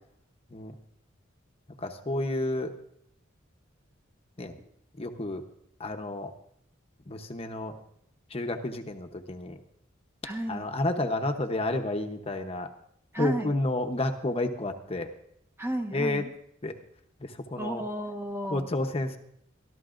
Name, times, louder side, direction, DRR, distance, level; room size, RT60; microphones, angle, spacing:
voice 1, 1.8-2.7 4.4-4.6 5.0-5.4 5.8-6.3 7.1-7.7 8.3-9.6 10.5-12.7 13.2-15.1 15.9-16.2 16.6-16.7 17.2-17.8 18.5-19.2, left 2 dB, 30° left, 5 dB, 0.9 m, -30 dB
voice 2, 10.2-10.7 13.1-13.6 15.6-16.3 17.6-18.7, right 1 dB, 10° right, 5 dB, 0.9 m, -33 dB
25.0 x 12.5 x 2.5 m, 0.71 s
head